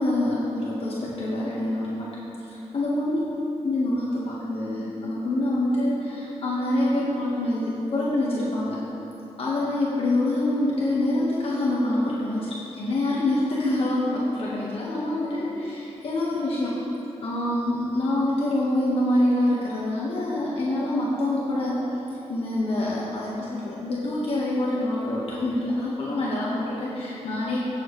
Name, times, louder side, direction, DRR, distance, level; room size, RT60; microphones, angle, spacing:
voice 1, 0.0-2.1 2.4-3.2 3.6-8.8 9.4-16.7 17.2-21.8 22.3-27.7, left 1 dB, 55° left, -6 dB, 1.5 m, -26 dB
17.5 x 7.1 x 3.2 m, 3.0 s
wide cardioid pair, 160°, 11 cm